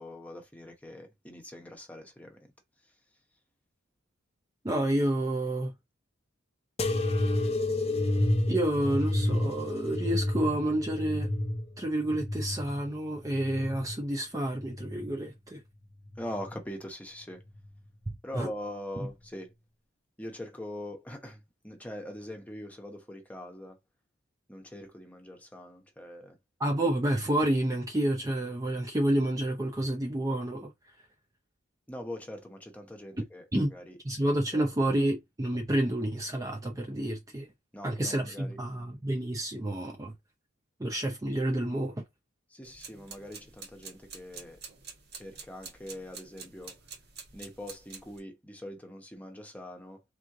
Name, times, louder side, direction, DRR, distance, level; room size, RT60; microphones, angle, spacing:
voice 1, 0.0-2.5 2.8-3.0 16.2-17.4 18.2-19.5 20.2-23.8 24.5-26.4 31.9-34.7 37.7-38.6 42.5-44.6 45.1-46.8 47.3-50.0, left 1 dB, 5° left, 0.9 m, -43 dB
voice 2, 4.6-5.7 8.5-11.3 11.8-15.6 18.4-18.5 26.6-30.7 33.5-33.7 34.1-37.5 37.8-40.1 40.8-42.0, right 1 dB, 15° right, 0.5 m, -29 dB
sound 1, 6.8-14.0 14.5-15.3 16.1-16.6 17.6-17.7, left 1 dB, 30° left, 0.5 m, -30 dB
sound 2, 42.6-48.2, right 5 dB, 55° right, 1.3 m, -48 dB
3.7 x 3.1 x 3.7 m
head